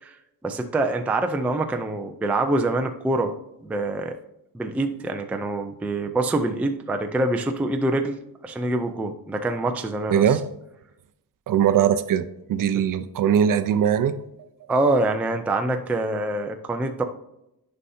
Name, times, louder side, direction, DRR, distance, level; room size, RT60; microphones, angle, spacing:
voice 1, 0.4-3.3 3.6-4.2 4.5-10.2 12.7-12.8 14.7-17.0, right 2 dB, 5° right, 5 dB, 0.3 m, -25 dB
voice 2, 10.1-10.5 11.5-14.5, right 9 dB, 55° right, 10 dB, 0.6 m, -21 dB
9.8 x 5.6 x 2.7 m, 0.84 s
cardioid pair, 175°, 41 cm